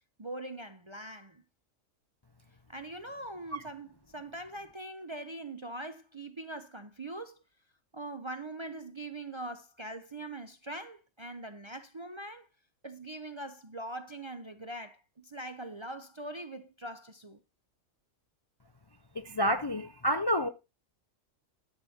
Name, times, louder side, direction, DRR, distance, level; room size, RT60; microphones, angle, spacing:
voice 1, 0.2-1.4 2.7-7.4 7.9-12.5 12.8-17.4, right 1 dB, 30° right, 0.5 m, -42 dB
voice 2, 19.1-20.5, equal, 30° left, 0.4 m, -29 dB
12.0 x 4.0 x 7.1 m
omnidirectional pair, 1.3 m